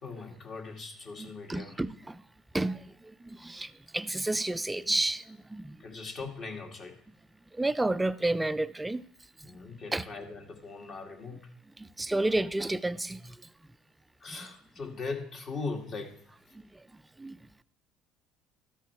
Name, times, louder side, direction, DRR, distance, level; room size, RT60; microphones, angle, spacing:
voice 1, 0.0-1.8 5.8-7.0 9.4-11.5 14.2-16.2, left 4 dB, 50° left, 2.1 m, -40 dB
voice 2, 1.2-2.2 2.5-5.8 7.6-9.0 9.4-9.5 9.9-10.0 11.8-13.4 17.2-17.4, right 2 dB, 10° right, 0.4 m, -31 dB
13.0 x 4.7 x 4.6 m
supercardioid pair, 95°, 0 cm